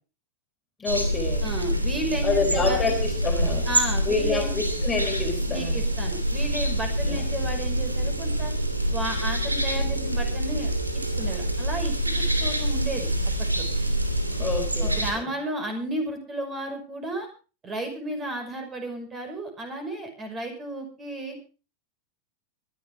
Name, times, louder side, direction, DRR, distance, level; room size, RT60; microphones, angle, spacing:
voice 1, 0.8-1.5 2.2-3.7 4.0-5.8 7.0-7.2 14.4-15.3, left 4 dB, 15° left, 1 dB, 4.2 m, -28 dB
sound 1, 0.9-15.1, right 1 dB, 85° right, 2.9 m, -26 dB
voice 2, 1.4-2.9 3.7-4.5 5.5-8.5 8.9-10.7 11.2-13.1 13.4-13.7 14.8-17.3 17.6-21.5, right 1 dB, 20° right, 5 dB, 5.7 m, -33 dB
24.0 x 11.5 x 3.7 m, 0.35 s
figure-of-eight pair, 90°, 0 cm